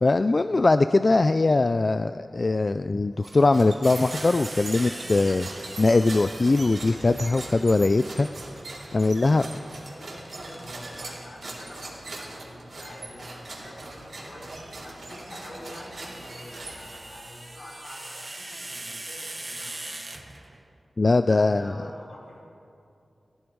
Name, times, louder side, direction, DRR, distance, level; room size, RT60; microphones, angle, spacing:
voice 1, 0.0-5.5 5.8-8.3 8.9-9.5 21.0-21.7, left 3 dB, 45° left, 11 dB, 0.3 m, -21 dB
sound 1, 3.2-17.2, right 2 dB, 70° right, 3.8 m, -40 dB
sound 2, 3.8-7.1 10.0-11.5 13.2-13.4 15.5-20.7, right 2 dB, 30° right, 1.3 m, -41 dB
voice 2, 9.3-20.2 21.2-22.4, left 1 dB, 85° left, -6 dB, 4.8 m, -46 dB
17.5 x 15.5 x 4.7 m, 2.6 s
wide cardioid pair, 80°, 0 cm